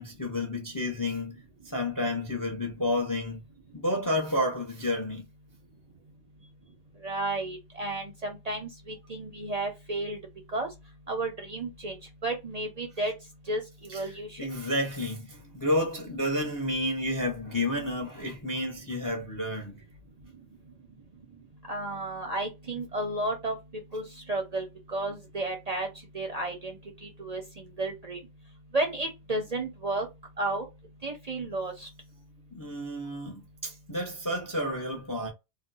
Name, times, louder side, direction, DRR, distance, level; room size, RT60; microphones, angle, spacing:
voice 1, 0.0-1.4 1.7-3.4 3.7-5.2 13.9-14.0 14.4-19.8 32.5-35.3, left 1 dB, 25° left, 0.4 m, -30 dB
voice 2, 7.0-10.2 10.5-10.7 11.1-12.0 12.2-13.1 13.5-14.4 21.7-23.6 23.9-25.9 26.1-26.7 27.0-27.4 27.8-28.2 28.7-30.1 30.4-30.6 31.0-31.9, right 2 dB, 45° right, 0.6 m, -32 dB
2.6 x 2.1 x 3.7 m
omnidirectional pair, 1.2 m